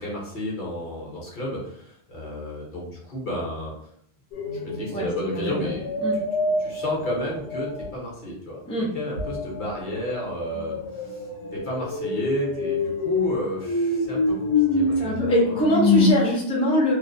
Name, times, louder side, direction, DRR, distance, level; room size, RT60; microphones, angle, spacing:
voice 1, 0.0-3.7 4.6-6.0 6.6-11.3 11.5-15.6, equal, 50° left, -4 dB, 0.8 m, -32 dB
sound 1, 4.3-8.0 9.2-16.1, left 3 dB, 90° left, 1.0 m, -26 dB
voice 2, 5.4-5.7 6.0-6.2 8.7-8.9 15.0-17.0, equal, 10° left, -5 dB, 0.3 m, -23 dB
2.4 x 2.0 x 2.5 m, 0.70 s
omnidirectional pair, 1.2 m